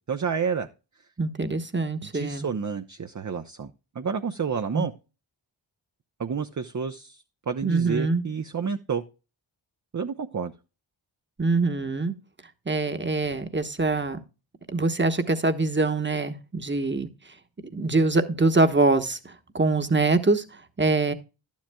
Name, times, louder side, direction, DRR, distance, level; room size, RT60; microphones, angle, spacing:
voice 1, 0.1-0.7 2.0-4.9 6.2-9.0 9.9-10.5, right 6 dB, 40° right, 0.7 m, -30 dB
voice 2, 1.2-2.5 4.7-4.9 7.6-8.2 11.4-12.1 12.7-14.2 14.7-17.1 17.7-20.4 20.8-21.1, right 3 dB, 25° right, 1.2 m, -24 dB
11.5 x 10.5 x 2.3 m
cardioid pair, 40°, 47 cm